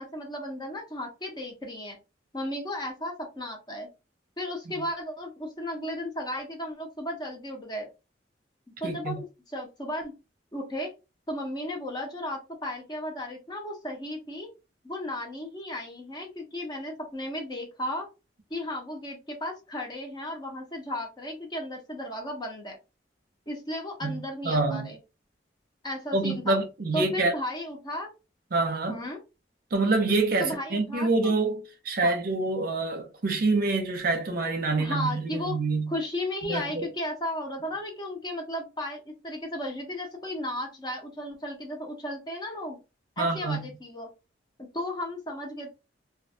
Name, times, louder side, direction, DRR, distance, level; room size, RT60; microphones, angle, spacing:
voice 1, 0.0-2.0 2.3-3.9 4.4-7.9 8.8-9.2 9.5-10.1 10.5-10.9 11.3-14.5 14.8-18.1 18.5-22.8 23.5-25.0 25.8-26.6 26.9-28.1 28.9-29.2 30.4-31.4 32.0-32.1 34.8-35.6 35.9-42.8 43.2-44.1 44.6-45.7, left 1 dB, 25° left, 0.7 m, -34 dB
voice 2, 8.8-9.2 24.0-24.2 24.4-24.9 26.1-27.3 28.5-29.0 29.7-35.9 36.4-36.9 43.2-43.7, right 3 dB, 55° right, 0.6 m, -26 dB
2.4 x 2.2 x 2.6 m
head